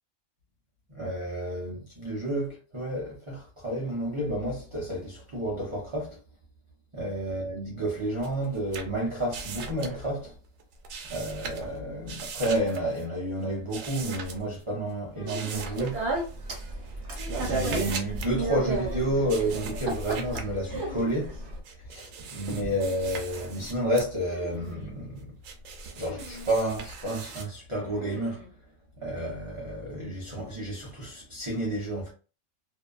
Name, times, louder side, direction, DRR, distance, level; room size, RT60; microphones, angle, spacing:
voice 1, 0.9-6.2 6.9-10.3 11.1-16.0 17.1-21.4 21.8-25.3 26.0-28.4 29.0-32.1, right 1 dB, 35° right, 0.5 m, -31 dB
sound 1, 8.2-10.1 10.6-11.8 12.0-13.0 13.6-14.6 15.3-16.4 16.8-18.3 19.3-20.5 21.4-24.1 24.6-27.4, right 5 dB, 90° right, 1.0 m, -40 dB
sound 2, 15.2-15.9 17.2-18.0 18.7-19.4 20.7-21.1 21.4-21.5 22.4-23.1 24.2-25.0 26.0-26.8 27.8-28.5, left 1 dB, 70° left, 1.4 m, -44 dB
Speech, 15.5-21.6, right 2 dB, 55° right, 0.9 m, -33 dB
2.6 x 2.2 x 2.4 m
omnidirectional pair, 1.3 m